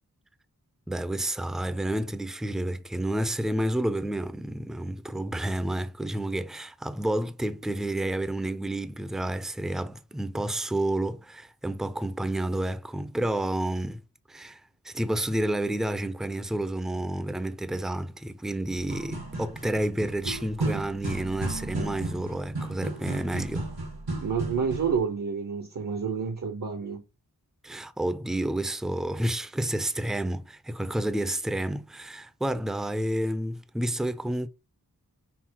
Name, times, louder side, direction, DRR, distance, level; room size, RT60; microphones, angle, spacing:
voice 1, 0.9-14.0 14.3-23.7 27.6-34.5, right 1 dB, ahead, 0.5 m, -30 dB
sound 1, 18.8-25.0, right 2 dB, 90° right, 1.8 m, -34 dB
voice 2, 24.2-27.0, right 6 dB, 55° right, 0.8 m, -29 dB
5.7 x 2.0 x 4.5 m
wide cardioid pair, 55°, 36 cm